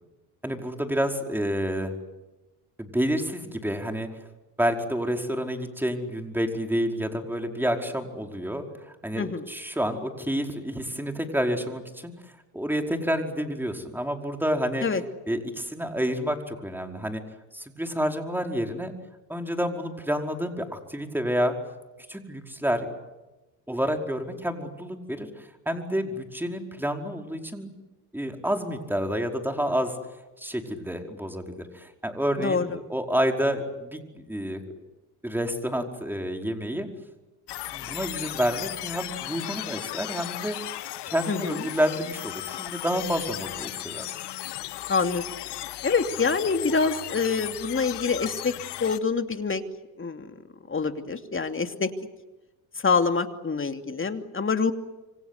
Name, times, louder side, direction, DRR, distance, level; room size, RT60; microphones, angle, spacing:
voice 1, 0.4-1.9 2.8-4.1 4.6-14.8 15.3-17.2 17.5-18.9 19.3-21.6 22.1-22.9 23.7-27.7 28.1-29.9 30.4-34.6 35.2-36.9 37.7-40.6 41.1-44.2, equal, 5° right, 3 dB, 5.0 m, -29 dB
voice 2, 9.2-9.5 14.8-15.0 32.4-32.7 41.3-41.6 44.9-45.4 45.8-48.5 48.8-49.6 50.0-50.3 50.7-51.9 52.8-54.7, left 5 dB, 25° left, 7 dB, 2.8 m, -26 dB
sound 1, 37.5-49.0, left 15 dB, 60° left, 1.4 m, -36 dB
27.5 x 25.0 x 8.3 m, 1.1 s
hypercardioid pair, 65°, 46 cm